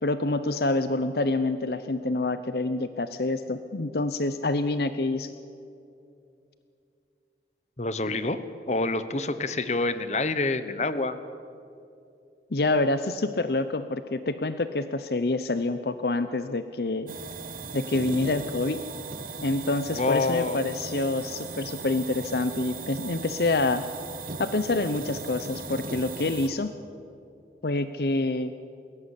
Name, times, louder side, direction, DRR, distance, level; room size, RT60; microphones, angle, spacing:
voice 1, 0.0-5.3 12.5-17.1 17.7-18.8 19.4-23.8 24.4-26.7 27.6-28.5, left 2 dB, 60° left, 11 dB, 0.7 m, -27 dB
voice 2, 7.8-8.4 8.7-11.2 19.9-20.6, left 3 dB, 40° left, 12 dB, 1.1 m, -27 dB
sound 1, 17.1-26.5, right 4 dB, 50° right, 1.5 m, -38 dB
21.5 x 17.0 x 9.9 m, 2.6 s
head